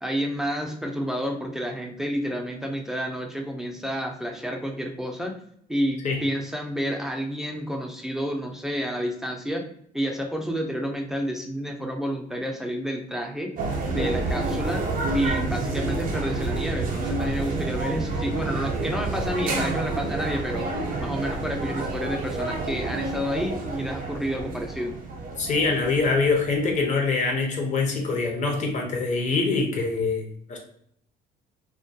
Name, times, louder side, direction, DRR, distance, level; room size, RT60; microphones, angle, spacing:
voice 1, 0.0-5.3 5.7-13.5 13.9-14.8 15.1-20.7 21.0-25.0, equal, 5° right, 2 dB, 0.4 m, -30 dB
sound 1, 13.6-27.0, right 2 dB, 55° right, 0.6 m, -29 dB
voice 2, 25.4-30.6, left 4 dB, 45° left, 1 dB, 0.7 m, -24 dB
2.2 x 2.2 x 2.6 m, 0.66 s
cardioid pair, 110°, 17 cm